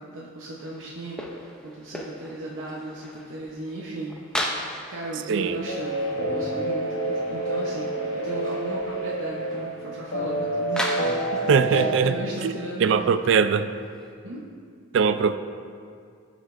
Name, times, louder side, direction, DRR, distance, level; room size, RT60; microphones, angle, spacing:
voice 1, 0.0-4.5 4.9-12.9 14.2-14.4, right 2 dB, 90° right, -5 dB, 0.8 m, -36 dB
sound 1, 0.6-14.1, left 1 dB, 5° left, 0.5 m, -38 dB
voice 2, 5.3-5.7 11.5-12.1 12.4-13.7 14.9-15.4, right 6 dB, 65° right, 11 dB, 0.3 m, -21 dB
sound 2, 5.7-12.0, right 1 dB, 80° left, 1.0 m, -28 dB
12.5 x 5.1 x 2.5 m, 2.2 s
head